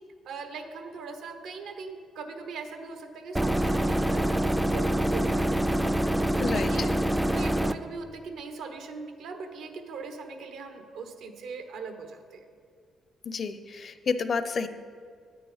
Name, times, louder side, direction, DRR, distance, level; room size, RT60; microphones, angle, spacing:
voice 1, 0.2-12.4, right 4 dB, 75° right, 7 dB, 1.1 m, -41 dB
sound 1, 3.4-7.8, right 1 dB, 5° right, 0.4 m, -25 dB
voice 2, 6.4-6.7 13.3-14.7, left 5 dB, 50° left, 11 dB, 0.6 m, -30 dB
9.3 x 8.7 x 5.0 m, 2.1 s
cardioid pair, 90°, 0 cm